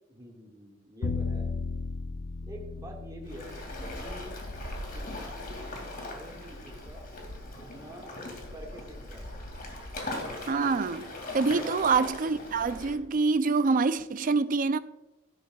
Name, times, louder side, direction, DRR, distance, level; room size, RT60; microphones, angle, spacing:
voice 1, 0.1-1.6 2.4-3.5 4.0-4.4 4.9-7.1 7.5-9.3 11.5-12.1, right 1 dB, 20° right, 1.9 m, -47 dB
Bowed string instrument, 1.0-7.2, left 4 dB, 70° left, 0.6 m, -37 dB
Waves surf, 3.2-12.9, left 1 dB, 45° left, 2.4 m, -40 dB
voice 2, 10.5-14.8, right 4 dB, 45° right, 0.4 m, -26 dB
12.0 x 11.5 x 2.4 m
head